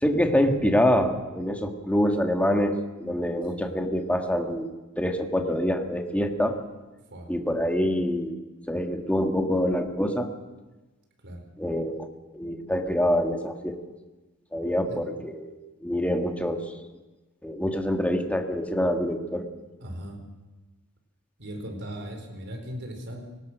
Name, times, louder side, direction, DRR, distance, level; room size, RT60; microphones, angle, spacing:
voice 1, 0.0-4.7 5.0-6.6 7.3-8.3 8.7-10.3 11.6-12.1 12.3-13.8 14.5-16.7 17.4-19.5, equal, 5° left, 4 dB, 1.9 m, -25 dB
voice 2, 19.8-20.2 21.4-23.2, equal, 55° right, 4 dB, 4.6 m, -38 dB
24.5 x 18.5 x 6.3 m, 1.2 s
head